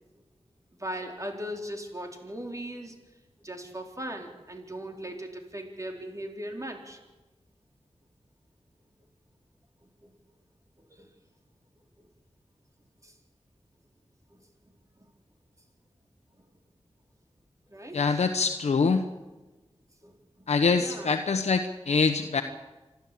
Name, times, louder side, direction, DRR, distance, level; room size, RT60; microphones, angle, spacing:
voice 1, 0.8-3.0 3.4-7.0 10.0-10.1 10.9-11.1 13.0-13.1 14.3-14.4 17.7-18.3 20.0-20.5 20.8-21.1, equal, 30° right, 3 dB, 4.2 m, -38 dB
voice 2, 17.9-19.0 20.5-22.4, left 4 dB, 85° left, 6 dB, 1.1 m, -24 dB
27.0 x 12.0 x 8.6 m, 1.1 s
cardioid pair, 50°, 11 cm